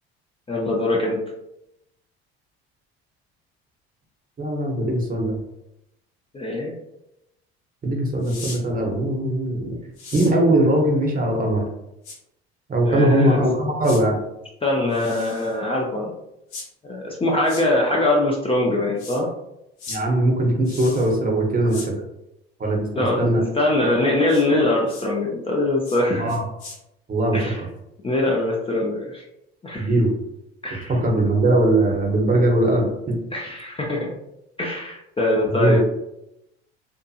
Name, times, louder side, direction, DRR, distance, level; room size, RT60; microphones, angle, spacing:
voice 1, 0.5-1.2 6.3-6.7 9.5-9.6 12.9-13.4 14.6-16.1 16.9-19.3 23.0-23.3 23.5-26.4 27.3-27.6 28.0-29.2 29.6-29.9 30.6-31.0 33.3-34.1 34.6-35.8, left 1 dB, 15° left, -3 dB, 0.5 m, -22 dB
voice 2, 4.4-5.4 7.8-9.7 10.1-11.6 12.7-14.2 19.9-21.9 22.6-23.4 26.1-26.4 27.1-27.4 29.8-30.1 30.7-33.2 35.5-35.8, right 1 dB, 25° right, 0 dB, 0.8 m, -20 dB
sound 1, 8.2-8.6 10.0-10.3 12.0-12.2 13.8-14.0 14.9-15.6 16.5-16.7 17.4-17.6 19.0-19.2 19.8-20.0 20.6-21.1 21.7-21.9 24.3-24.4 24.9-25.1 25.8-26.0 26.3-26.8, left 3 dB, 75° left, 0.9 m, -37 dB
2.7 x 2.5 x 2.4 m, 0.86 s
hypercardioid pair, 70°, 32 cm